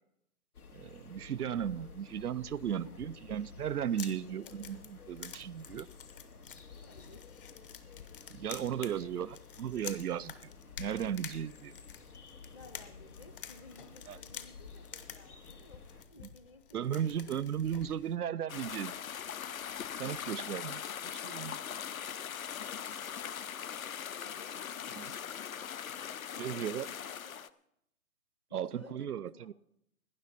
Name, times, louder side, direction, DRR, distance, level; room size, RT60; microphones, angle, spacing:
sound 1, 0.5-16.0, left 5 dB, 80° left, 1.9 m, -52 dB
voice 1, 0.7-4.8 5.1-5.9 8.3-9.3 9.6-10.3 10.8-11.7 16.7-18.9 20.0-21.6 25.0-25.1 26.4-26.9 28.5-29.5, right 9 dB, 90° right, 0.6 m, -35 dB
sound 2, 3.7-18.2, left 8 dB, 35° left, 0.9 m, -50 dB
voice 2, 4.4-4.8 6.8-7.5 8.1-8.4 9.0-9.3 12.5-17.4 23.3-23.7 24.1-25.3 26.0-27.5 28.5-29.5, left 2 dB, 20° left, 0.6 m, -57 dB
sound 3, 18.5-27.5, left 8 dB, 65° left, 0.8 m, -41 dB
18.0 x 10.0 x 4.2 m
hypercardioid pair, 150°, 44 cm